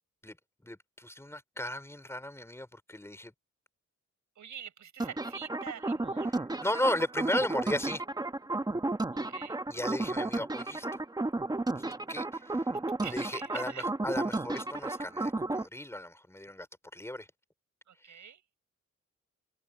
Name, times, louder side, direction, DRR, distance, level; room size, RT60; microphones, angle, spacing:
voice 1, 0.6-3.3 6.3-8.0 9.7-11.0 11.8-11.9 12.1-12.6 13.0-16.7 16.9-17.3 18.0-18.2, left 1 dB, 10° left, 4.3 m, -35 dB
voice 2, 4.4-6.4 9.1-9.6 13.0-13.9 14.9-15.0 17.9-18.4, right 8 dB, 80° right, 6.1 m, -45 dB
sound 1, 5.0-15.6, right 2 dB, 15° right, 0.9 m, -33 dB
wide cardioid pair, 140°, 29 cm